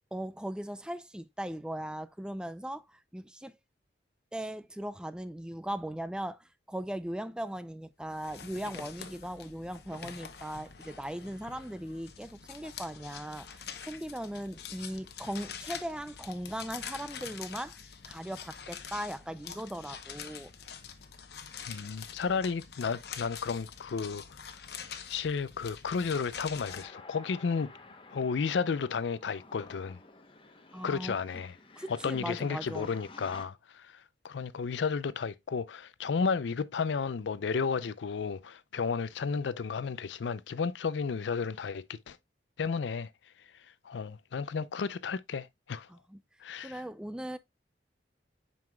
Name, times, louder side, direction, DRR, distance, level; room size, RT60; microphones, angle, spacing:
voice 1, 0.1-3.5 4.3-20.5 30.7-31.2 31.8-32.9 45.9-46.2 46.6-47.4, right 1 dB, 5° right, 0.3 m, -39 dB
sound 1, 8.1-26.8, left 7 dB, 60° left, 0.8 m, -45 dB
voice 2, 21.7-24.2 25.1-27.7 28.1-30.0 30.8-31.5 31.9-33.9 34.2-42.2 42.6-43.1 43.9-45.9 46.4-46.8, left 5 dB, 85° left, 0.4 m, -32 dB
sound 2, 26.6-33.4, left 3 dB, 30° left, 0.8 m, -52 dB
7.6 x 5.5 x 2.2 m
head